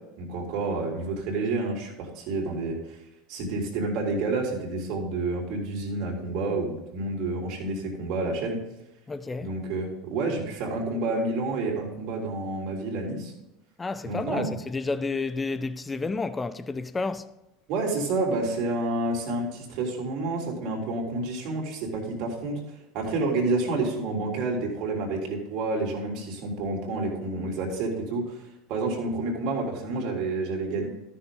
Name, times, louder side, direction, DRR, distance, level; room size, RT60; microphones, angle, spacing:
voice 1, 0.2-3.0 3.3-8.6 9.4-13.3 14.0-14.5 17.7-22.6 22.9-30.9, right 2 dB, 55° right, 3.3 m, -29 dB
voice 2, 9.1-9.5 13.8-17.4, left 3 dB, 20° left, 0.5 m, -31 dB
14.0 x 6.6 x 3.8 m
hypercardioid pair, 80°, 0 cm